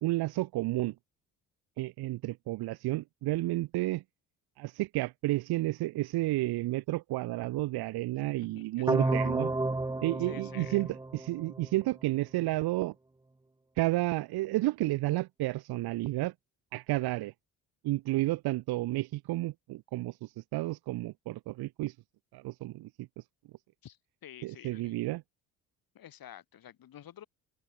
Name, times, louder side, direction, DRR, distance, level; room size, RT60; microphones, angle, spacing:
voice 1, 0.0-0.9 1.8-4.0 4.6-9.5 10.0-12.9 13.8-16.3 16.7-17.3 17.8-21.9 22.3-23.2 24.4-25.2, right 18 dB, 70° right, 1.2 m, -31 dB
voice 2, 8.5-9.3 10.3-10.8 23.8-25.0 25.9-27.3, left 11 dB, 60° left, 6.8 m, -50 dB
sound 1, 8.9-11.8, right 2 dB, 10° right, 0.9 m, -31 dB
supercardioid pair, 65°, 39 cm